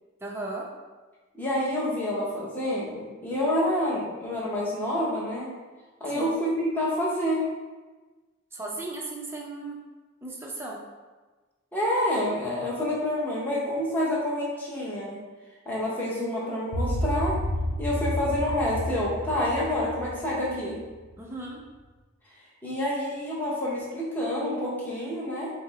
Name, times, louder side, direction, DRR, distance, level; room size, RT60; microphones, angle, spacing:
voice 1, 0.2-0.7 6.1-6.4 8.5-9.8 10.2-10.8 21.2-21.6, right 2 dB, 10° right, -2 dB, 0.5 m, -36 dB
voice 2, 1.3-5.5 6.0-7.5 11.7-15.2 15.7-17.4 17.8-20.8 22.6-25.5, left 1 dB, 10° left, -6 dB, 0.8 m, -28 dB
sound 1, 16.7-21.1, equal, 80° right, 0.6 m, -30 dB
5.0 x 2.0 x 4.0 m, 1.3 s
head